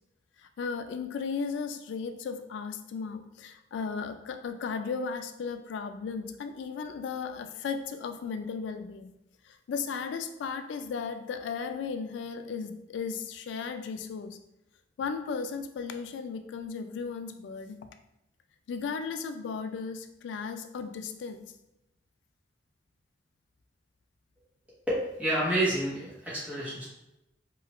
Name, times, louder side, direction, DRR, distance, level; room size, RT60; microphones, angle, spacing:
voice 1, 0.6-9.1 9.5-14.4 15.0-17.9 18.7-21.5, left 5 dB, 80° left, 8 dB, 0.3 m, -35 dB
voice 2, 24.9-26.9, right 1 dB, 5° right, -8 dB, 0.8 m, -29 dB
3.1 x 2.3 x 2.9 m, 0.88 s
head